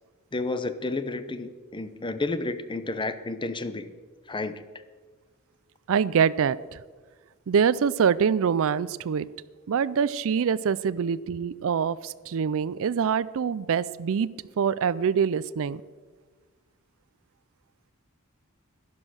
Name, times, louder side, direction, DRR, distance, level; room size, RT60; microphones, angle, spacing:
voice 1, 0.3-3.9 4.3-4.7, left 2 dB, 20° left, 12 dB, 0.7 m, -31 dB
voice 2, 5.9-6.8 7.5-9.3 9.7-14.3 14.6-15.8, right 7 dB, 65° right, 18 dB, 0.4 m, -25 dB
11.5 x 11.0 x 6.3 m, 1.4 s
head